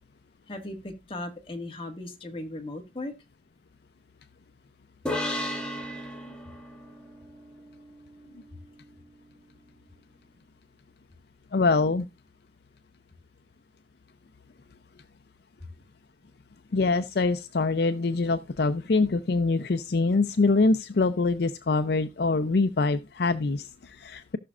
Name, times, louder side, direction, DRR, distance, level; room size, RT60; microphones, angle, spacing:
voice 1, 0.5-3.1, left 2 dB, 30° left, 1.7 m, -37 dB
sound 1, 5.1-8.5, left 1 dB, 5° left, 1.7 m, -35 dB
voice 2, 11.5-12.1 16.7-24.4, left 3 dB, 60° left, 0.5 m, -24 dB
18.0 x 6.0 x 2.4 m
head